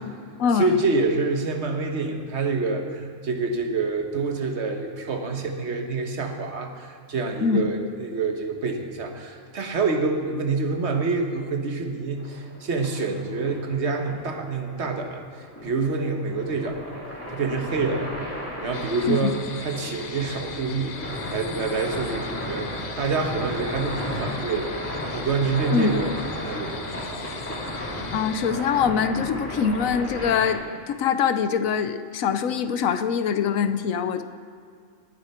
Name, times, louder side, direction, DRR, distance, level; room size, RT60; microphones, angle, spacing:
voice 1, 0.5-17.0 17.3-18.2 18.6-21.0 21.3-27.3, right 3 dB, 60° right, 4 dB, 1.4 m, -27 dB
sound 1, 12.2-30.5, left 1 dB, 10° left, 2.4 m, -34 dB
sound 2, 18.7-28.5, left 6 dB, 50° left, 0.5 m, -40 dB
voice 2, 28.1-30.6 30.9-34.2, left 6 dB, 85° left, 10 dB, 1.1 m, -23 dB
19.0 x 8.9 x 4.4 m, 2.3 s
omnidirectional pair, 1.4 m